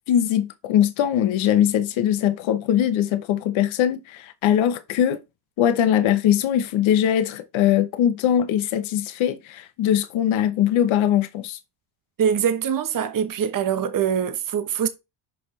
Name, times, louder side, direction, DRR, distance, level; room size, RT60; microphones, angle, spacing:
voice 1, 0.1-5.2 5.6-11.6, left 10 dB, 85° left, 1.0 m, -21 dB
voice 2, 12.2-14.9, right 8 dB, 45° right, 1.0 m, -23 dB
5.9 x 5.3 x 3.2 m
cardioid pair, 90°, 46 cm